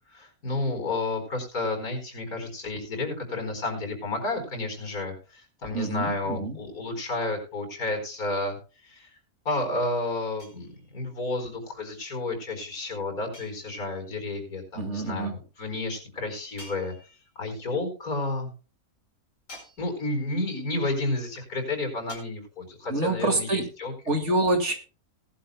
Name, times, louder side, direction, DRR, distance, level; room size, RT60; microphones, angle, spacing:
voice 1, 0.1-8.6 8.8-9.1 9.4-16.9 17.3-18.5 19.8-24.1, left 2 dB, 80° left, 5 dB, 5.1 m, -31 dB
voice 2, 5.7-6.6 14.8-15.3 22.9-23.6 24.1-24.7, right 2 dB, 50° right, 5 dB, 2.6 m, -26 dB
sound 1, 10.4-11.1 13.3-14.1 16.6-17.5 19.5-20.3 22.1-22.2, left 2 dB, 55° left, 5.4 m, -49 dB
18.5 x 11.5 x 2.3 m, 0.34 s
omnidirectional pair, 1.5 m